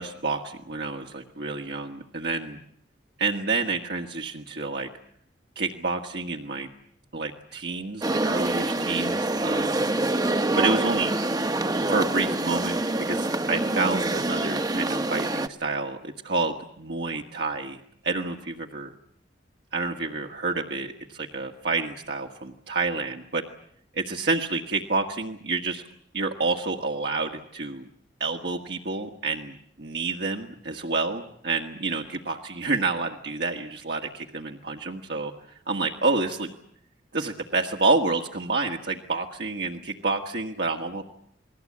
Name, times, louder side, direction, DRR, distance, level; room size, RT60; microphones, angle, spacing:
voice 1, 0.0-2.6 3.2-4.9 5.5-6.7 7.1-9.8 10.5-11.1 11.9-12.8 13.1-17.8 18.0-18.9 19.7-23.4 23.9-25.8 26.1-27.9 28.2-35.3 35.7-36.5 37.1-41.0, right 3 dB, 65° right, 2 dB, 1.7 m, -28 dB
sound 1, 8.0-15.5, right 2 dB, 20° right, 1.1 m, -26 dB
29.5 x 20.5 x 8.7 m, 0.68 s
head